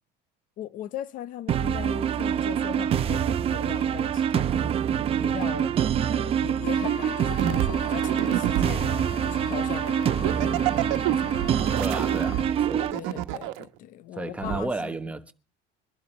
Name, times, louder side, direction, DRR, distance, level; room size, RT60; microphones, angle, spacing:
voice 1, 0.6-4.8 5.1-5.8 6.0-11.4 12.9-15.0, left 11 dB, 45° left, 0.9 m, -39 dB
sound 1, 1.5-12.9, right 9 dB, 30° right, 0.7 m, -25 dB
sound 2, 6.6-12.4, left 13 dB, 80° left, 1.0 m, -42 dB
sound 3, 7.4-8.9 9.9-13.6 14.4-14.6, right 15 dB, 80° right, 1.2 m, -29 dB
voice 2, 11.8-13.0 14.1-15.3, right 2 dB, 5° right, 1.1 m, -33 dB
23.5 x 11.5 x 3.2 m
cardioid pair, 170°, 20 cm